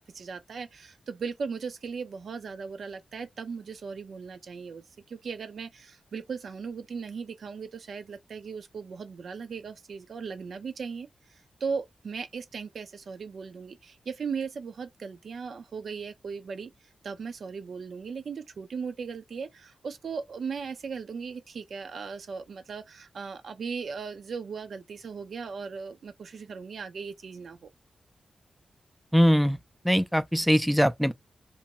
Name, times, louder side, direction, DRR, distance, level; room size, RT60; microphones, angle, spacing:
voice 1, 0.0-11.1 11.6-16.7 17.0-27.7, right 5 dB, 75° right, 0.6 m, -37 dB
voice 2, 29.1-29.6 29.8-31.1, equal, ahead, 0.4 m, -22 dB
2.6 x 2.2 x 2.8 m
cardioid pair, 55°, 0 cm